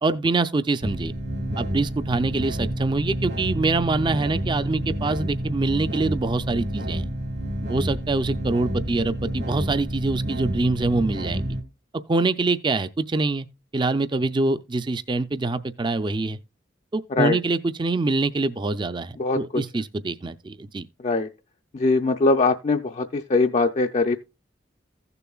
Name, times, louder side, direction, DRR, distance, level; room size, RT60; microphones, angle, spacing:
voice 1, 0.0-1.1 1.6-7.0 7.7-11.6 12.1-13.5 13.7-16.4 16.9-20.9, right 3 dB, 25° right, 0.4 m, -25 dB
sound 1, 0.8-11.6, right 1 dB, 60° right, 1.5 m, -29 dB
voice 2, 19.2-19.6 21.0-21.3 21.7-24.2, left 3 dB, 40° left, 0.4 m, -21 dB
15.5 x 6.9 x 2.3 m
head